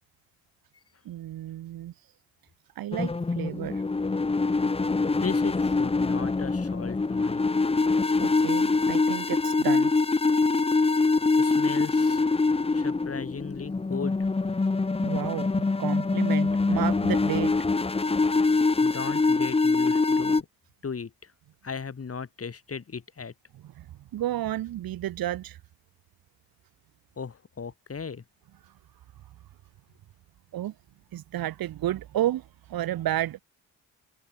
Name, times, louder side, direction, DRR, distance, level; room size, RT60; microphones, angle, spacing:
voice 1, 1.0-1.9 2.7-3.8 8.2-9.9 15.0-17.5 23.6-23.9 24.1-25.6 28.7-28.8 30.5-30.7 31.1-33.4, right 13 dB, 85° right, 1.7 m, -31 dB
sound 1, 2.9-20.4, left 3 dB, 15° left, 0.8 m, -24 dB
voice 2, 5.0-7.5 11.4-12.2 12.7-14.2 18.8-20.5 20.8-21.3 21.6-23.3 27.2-28.2, left 5 dB, 40° left, 2.5 m, -37 dB
cardioid pair, 60°, 35 cm